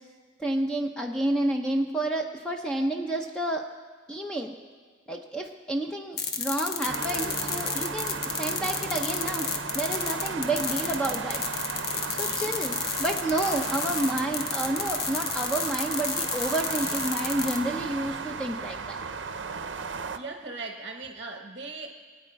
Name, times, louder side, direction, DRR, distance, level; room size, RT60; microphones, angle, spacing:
voice 1, 0.4-3.6 4.1-4.5 5.1-9.5 9.7-11.4 12.1-19.0, right 1 dB, 5° left, 2 dB, 0.6 m, -30 dB
sound 1, 6.2-17.6, left 6 dB, 50° left, 1.0 m, -31 dB
Gong, 6.8-17.5, equal, 20° right, 1.4 m, -46 dB
sound 2, 6.9-20.2, right 5 dB, 65° right, 0.6 m, -35 dB
voice 2, 12.3-12.6 20.1-21.9, right 3 dB, 40° right, 4 dB, 1.0 m, -39 dB
25.0 x 9.2 x 4.7 m, 1.5 s
head